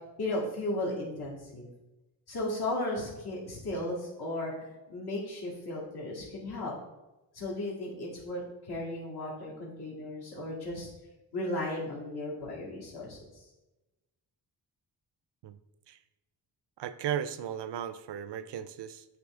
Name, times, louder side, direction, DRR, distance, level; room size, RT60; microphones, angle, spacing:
voice 1, 0.2-1.7 2.3-6.7 7.3-10.9 11.3-13.5, left 1 dB, 60° left, -5 dB, 2.1 m, -35 dB
voice 2, 16.8-19.0, right 9 dB, 70° right, 13 dB, 0.6 m, -36 dB
8.2 x 3.3 x 3.7 m, 1.0 s
cardioid pair, 65°, 44 cm